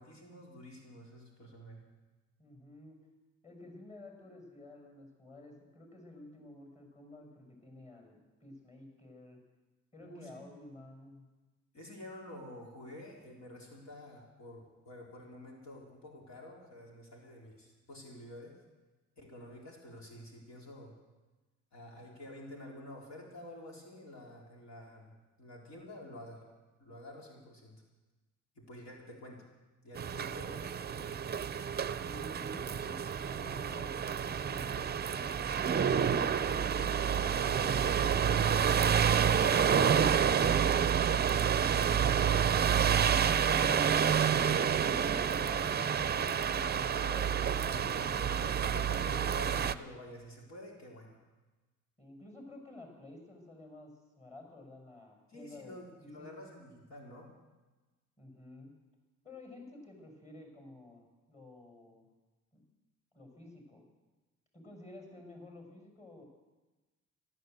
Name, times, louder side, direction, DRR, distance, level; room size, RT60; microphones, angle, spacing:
voice 1, 0.0-1.8 10.0-10.4 11.7-18.6 19.2-21.0 21.7-25.1 25.4-26.5 26.8-27.8 28.6-29.5 29.8-31.3 46.4-46.7 47.7-48.1 48.6-51.2 55.3-57.3, left 1 dB, 65° left, -2 dB, 3.9 m, -49 dB
voice 2, 2.4-3.0 3.4-9.4 9.9-11.3 32.0-35.4 36.2-41.4 42.3-46.4 46.8-48.8 52.0-55.7 56.0-56.3 58.2-58.8 59.2-62.1 62.5-62.6 63.1-63.8 64.5-66.2, left 2 dB, 25° left, 2 dB, 5.9 m, -52 dB
sound 1, 30.0-49.7, right 8 dB, 35° right, 0.6 m, -29 dB
14.5 x 12.5 x 7.9 m, 1.2 s
cardioid pair, 90°, 30 cm